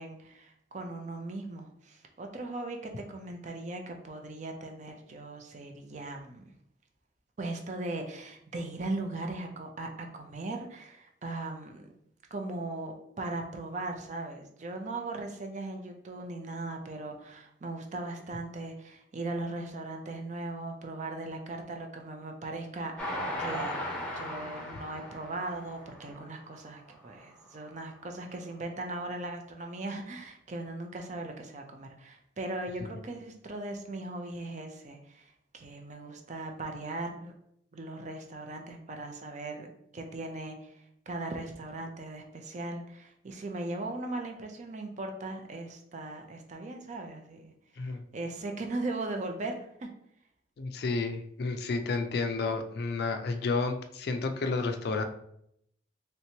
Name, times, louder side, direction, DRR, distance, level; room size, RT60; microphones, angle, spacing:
voice 1, 0.0-6.5 7.4-11.9 12.3-37.3 37.7-39.7 39.9-47.5 47.8-49.9, right 2 dB, 40° right, 4 dB, 0.5 m, -38 dB
Train, 23.0-26.4 26.9-27.0 27.3-27.4, equal, 5° left, 0.7 m, -37 dB
voice 2, 50.6-55.0, left 3 dB, 60° left, 7 dB, 0.4 m, -31 dB
3.2 x 2.9 x 2.7 m, 0.72 s
head